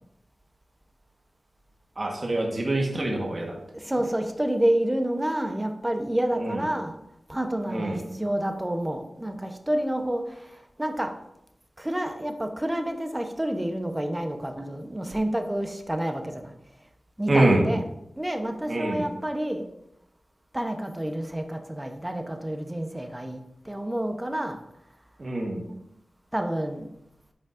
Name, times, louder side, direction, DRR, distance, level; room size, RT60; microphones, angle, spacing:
voice 1, 2.0-3.5 6.3-6.6 7.7-8.0 17.3-17.6 18.7-19.0 25.2-25.6, right 1 dB, 50° right, 0 dB, 1.3 m, -25 dB
voice 2, 3.7-6.9 7.3-11.1 11.8-16.5 17.2-17.8 18.2-19.7 20.5-24.6 26.3-26.9, right 1 dB, 15° right, 6 dB, 0.8 m, -29 dB
8.4 x 5.1 x 2.6 m, 0.82 s
cardioid pair, 50°, 0 cm